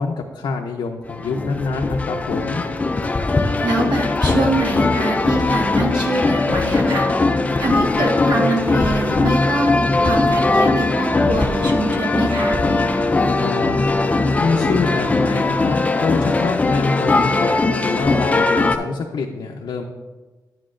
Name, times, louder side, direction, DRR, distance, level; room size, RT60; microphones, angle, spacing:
voice 1, 0.0-2.6 13.4-13.8 14.4-17.5 17.8-19.8, left 4 dB, 85° left, 1 dB, 0.6 m, -25 dB
sound 1, 1.1-18.8, left 3 dB, 20° left, 0.4 m, -19 dB
voice 2, 3.6-7.1 7.6-9.7 10.0-12.6, right 2 dB, 65° right, 0 dB, 1.5 m, -24 dB
9.7 x 9.0 x 2.5 m, 1.2 s
wide cardioid pair, 160°, 8 cm